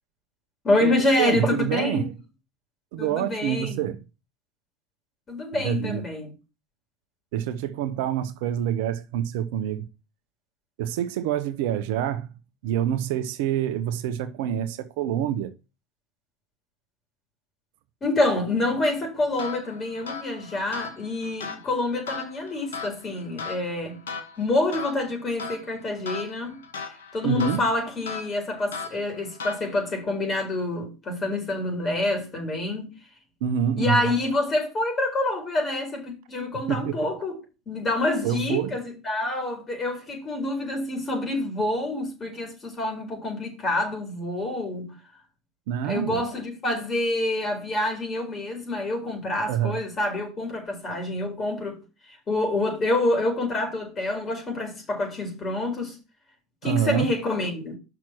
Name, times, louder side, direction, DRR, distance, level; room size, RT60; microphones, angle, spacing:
voice 1, 0.6-2.1 3.0-3.8 5.3-6.3 18.0-24.0 24.4-26.6 27.1-32.9 33.8-37.4 37.7-44.9 45.8-51.8 52.1-56.0 56.6-57.8, left 2 dB, 30° left, 4.7 m, -27 dB
voice 2, 1.2-2.1 2.9-4.0 5.5-6.0 7.3-9.9 10.8-12.3 12.6-15.5 27.2-27.7 33.4-34.1 36.7-37.0 38.2-38.7 45.7-46.2 49.5-49.8 56.6-57.1, right 10 dB, 65° right, 0.8 m, -26 dB
sound 1, 19.4-30.0, left 5 dB, 80° left, 1.4 m, -38 dB
6.0 x 6.0 x 6.2 m
hypercardioid pair, 85°, 0 cm